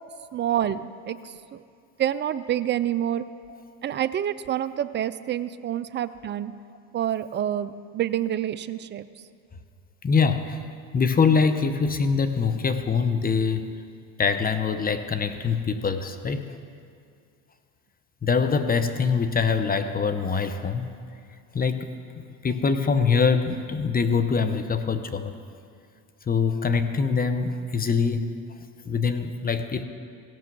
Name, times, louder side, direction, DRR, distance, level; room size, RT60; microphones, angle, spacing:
voice 1, 0.3-1.6 2.0-3.2 3.8-6.5 6.9-9.1, right 11 dB, 25° right, 14 dB, 0.3 m, -27 dB
voice 2, 10.0-10.6 10.9-13.7 14.2-16.5 18.2-20.9 21.5-25.3 26.3-28.3 28.9-29.8, left 5 dB, 20° left, 9 dB, 0.8 m, -24 dB
16.5 x 6.0 x 6.1 m, 2.3 s
supercardioid pair, 85°, 45 cm